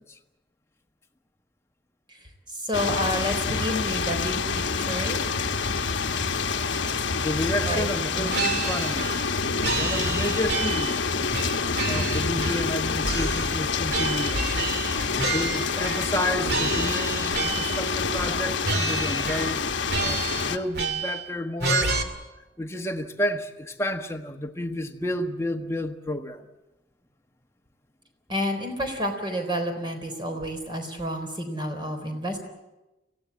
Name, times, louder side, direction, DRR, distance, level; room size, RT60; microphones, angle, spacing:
voice 1, 2.5-5.2 7.7-7.9 8.1-8.4 28.3-32.4, equal, 25° right, 4.0 m, -30 dB
sound 1, 2.7-20.6, left 5 dB, 85° left, 1.1 m, -27 dB
voice 2, 6.9-9.1 9.8-11.6 11.9-14.5 15.3-19.6 20.0-21.9 22.6-26.4, left 1 dB, 15° left, 1.4 m, -31 dB
sound 2, 8.3-9.3 9.6-11.0 11.3-12.8 13.0-16.2 16.5-17.8 18.2-18.4 18.6-19.6 19.9-21.3 21.6-22.0, right 3 dB, 60° right, 2.3 m, -29 dB
24.5 x 16.5 x 8.4 m
head